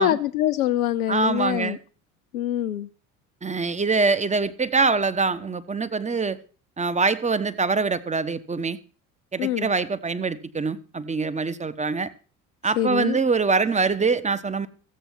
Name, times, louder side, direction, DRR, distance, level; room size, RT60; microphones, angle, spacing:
voice 1, 0.0-1.8 2.3-2.9 9.4-9.7 12.6-13.2, left 12 dB, 85° left, 0.6 m, -24 dB
voice 2, 1.1-1.8 3.4-6.4 6.8-8.8 9.3-12.1 12.6-14.7, right 4 dB, 15° right, 1.2 m, -24 dB
14.5 x 8.0 x 6.1 m
hypercardioid pair, 60°, 42 cm